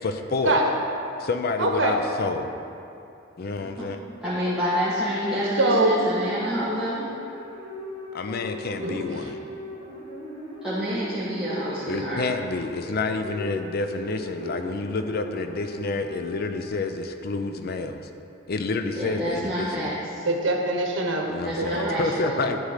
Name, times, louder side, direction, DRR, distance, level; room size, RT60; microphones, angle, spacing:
voice 1, 0.0-0.6 1.2-2.5 3.4-4.0 8.1-9.4 11.9-18.0 18.5-20.0 21.3-22.6, left 3 dB, 55° left, 7 dB, 0.5 m, -29 dB
voice 2, 1.6-2.0 5.6-5.9 8.8-9.3 20.2-21.3 21.6-22.0, right 2 dB, 85° right, 2 dB, 1.1 m, -23 dB
voice 3, 4.2-7.1 10.6-12.2 19.0-20.2 21.4-22.4, equal, 5° right, -12 dB, 1.4 m, -28 dB
sound 1, 5.7-16.7, left 1 dB, 30° left, 1.9 m, -38 dB
11.5 x 3.9 x 6.6 m, 2.6 s
head